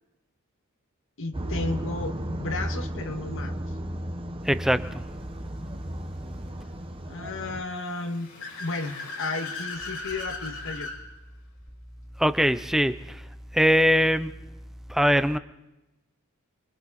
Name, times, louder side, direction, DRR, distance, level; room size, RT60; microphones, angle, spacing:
voice 1, 1.2-3.5 7.1-8.3 8.6-10.9, left 3 dB, 65° left, 5 dB, 1.8 m, -33 dB
sound 1, 1.3-7.6, right 1 dB, 25° right, 1.2 m, -34 dB
voice 2, 4.4-5.0 12.2-13.2 13.5-14.3 14.9-15.4, equal, ahead, 12 dB, 0.7 m, -22 dB
Car / Accelerating revving vroom, 7.7-11.0, left 3 dB, 90° left, 6.5 m, -37 dB
27.5 x 23.0 x 4.3 m, 0.97 s
head